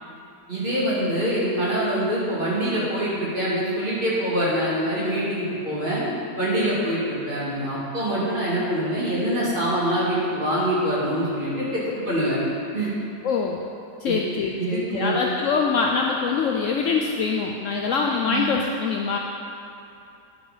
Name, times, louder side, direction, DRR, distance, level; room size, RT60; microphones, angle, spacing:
voice 1, 0.5-6.0 6.4-12.4 12.7-12.9 14.0-14.2 14.6-15.1 18.3-18.5, equal, 30° right, -8 dB, 2.2 m, -24 dB
voice 2, 13.2-13.6 14.0-19.2, left 5 dB, 85° left, 0 dB, 0.6 m, -24 dB
9.9 x 5.1 x 4.9 m, 2.7 s
omnidirectional pair, 1.9 m